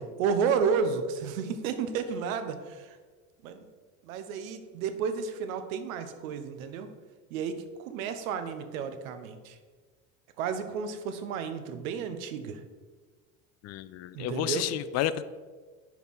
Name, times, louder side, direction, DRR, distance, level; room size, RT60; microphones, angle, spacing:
voice 1, 0.0-3.0 3.4-3.6 4.0-6.9 7.3-9.6 10.4-12.6 14.1-14.7, right 6 dB, 85° right, 9 dB, 0.9 m, -32 dB
voice 2, 13.6-15.2, left 12 dB, 40° left, 14 dB, 0.4 m, -31 dB
5.6 x 4.6 x 6.1 m, 1.4 s
supercardioid pair, 110°, 40 cm